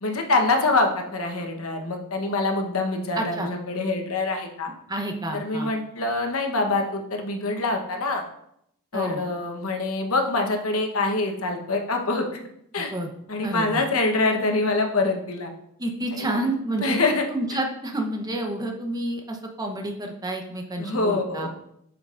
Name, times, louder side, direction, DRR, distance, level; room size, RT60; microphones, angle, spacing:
voice 1, 0.0-4.7 5.3-8.2 8.9-12.3 12.7-12.9 13.3-15.5 16.1-16.3 16.8-17.2 20.8-21.5, left 3 dB, 85° left, 3 dB, 1.1 m, -25 dB
voice 2, 3.2-3.5 4.9-5.7 8.9-9.2 12.8-13.1 13.4-13.8 15.8-17.0 17.3-21.5, right 1 dB, 20° right, 3 dB, 0.9 m, -29 dB
8.2 x 6.1 x 2.5 m, 0.74 s
head